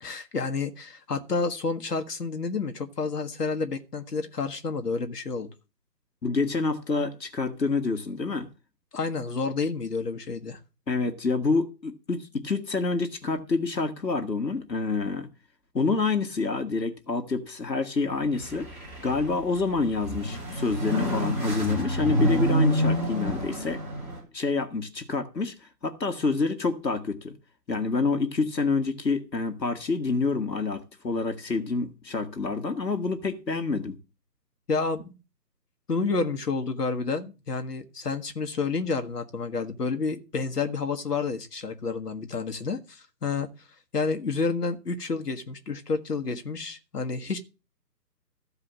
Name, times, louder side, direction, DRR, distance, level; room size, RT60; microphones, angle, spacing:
voice 1, 0.0-5.5 8.9-10.6 34.7-35.0 35.9-43.7 43.9-47.4, left 4 dB, 70° left, 1.6 m, -30 dB
voice 2, 6.2-8.5 10.9-15.3 15.7-18.7 19.0-23.8 24.3-27.3 27.7-34.0, left 4 dB, 85° left, 1.7 m, -27 dB
sound 1, 18.3-24.2, equal, 5° right, 5.5 m, -28 dB
14.5 x 4.9 x 7.2 m
figure-of-eight pair, 150°, 49 cm